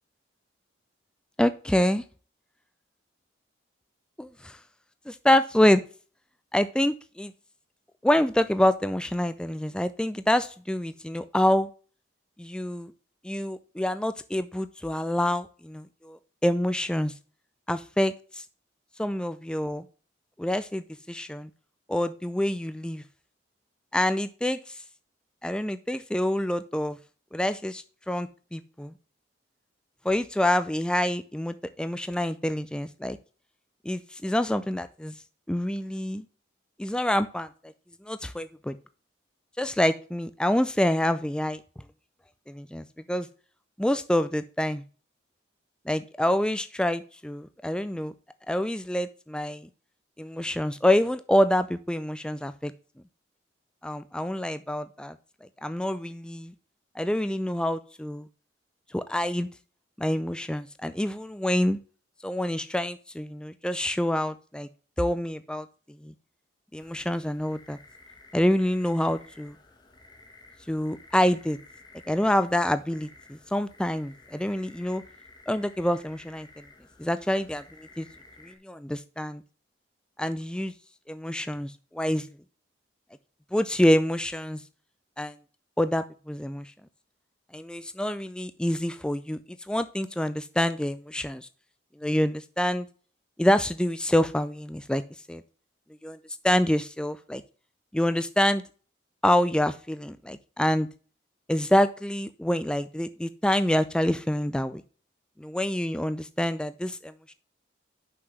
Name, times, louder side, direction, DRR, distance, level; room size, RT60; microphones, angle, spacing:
voice 1, 1.4-2.0 4.2-4.6 5.1-5.8 6.5-7.3 8.0-11.7 12.4-12.9 13.2-17.1 17.7-18.4 19.0-19.8 20.4-21.5 21.9-23.0 23.9-24.8 25.4-27.0 27.3-28.9 30.0-33.2 33.8-35.1 35.5-36.2 36.8-37.5 38.0-38.8 39.6-41.6 42.5-43.3 43.8-44.8 45.9-48.1 48.5-49.7 50.2-52.7 53.8-55.2 55.4-56.5 57.0-58.3 58.9-59.5 60.0-61.8 62.2-64.7 65.0-65.7 66.0-66.1 66.7-67.8 68.3-69.6 70.7-71.6 72.1-75.0 75.5-76.5 77.0-78.1 78.4-79.4 80.2-80.7 81.1-82.3 83.5-84.6 85.2-85.4 85.8-86.7 87.5-91.5 92.0-92.9 93.4-95.0 95.3-95.4 96.0-96.2 96.4-97.4 97.9-98.6 99.2-100.9 101.5-104.8 105.4-107.3, left 1 dB, 5° left, 12 dB, 0.3 m, -26 dB
sound 1, 66.8-78.6, left 3 dB, 25° left, 1.3 m, -53 dB
6.2 x 5.9 x 5.9 m, 0.39 s
head